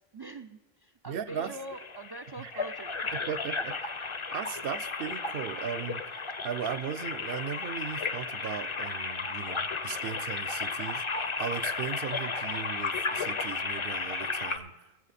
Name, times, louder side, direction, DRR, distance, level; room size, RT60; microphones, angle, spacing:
voice 1, 0.1-3.2, right 2 dB, 45° right, 4 dB, 0.3 m, -44 dB
voice 2, 1.1-1.6 2.4-2.6 3.1-4.0 4.3-15.1, right 8 dB, 70° right, 13 dB, 0.7 m, -37 dB
sound 1, 1.3-14.6, left 4 dB, 35° left, 0.6 m, -34 dB
23.0 x 7.8 x 4.1 m, 1.1 s
omnidirectional pair, 1.1 m